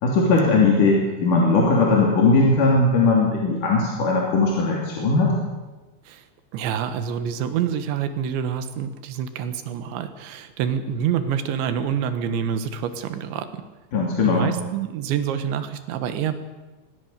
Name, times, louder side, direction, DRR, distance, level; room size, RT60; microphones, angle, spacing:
voice 1, 0.0-5.3 13.9-14.5, left 3 dB, 50° left, -2 dB, 4.1 m, -19 dB
voice 2, 6.5-13.5 14.3-16.4, right 8 dB, 75° right, 10 dB, 3.6 m, -27 dB
23.5 x 19.5 x 6.8 m, 1.2 s
omnidirectional pair, 5.4 m